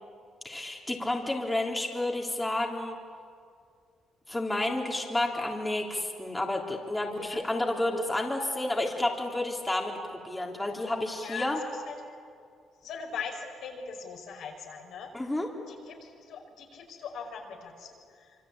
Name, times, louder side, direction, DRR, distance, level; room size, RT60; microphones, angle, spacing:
voice 1, 0.4-2.9 4.3-11.6 15.1-15.5, left 1 dB, 10° left, 0 dB, 3.4 m, -30 dB
voice 2, 11.1-11.9 12.8-15.1 15.7-18.4, left 6 dB, 75° left, 1 dB, 5.6 m, -41 dB
26.0 x 25.5 x 8.7 m, 2.3 s
cardioid pair, 90°, 0 cm